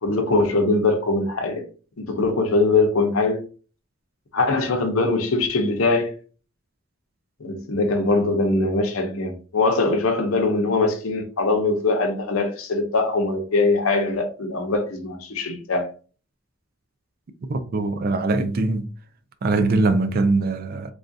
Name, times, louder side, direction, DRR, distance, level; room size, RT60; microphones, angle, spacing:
voice 1, 0.0-1.6 2.0-3.4 4.3-6.1 7.4-15.9, left 3 dB, 90° left, 0.7 m, -22 dB
voice 2, 17.5-18.9 19.4-20.9, right 3 dB, 45° right, 0.4 m, -22 dB
3.4 x 2.4 x 2.6 m
head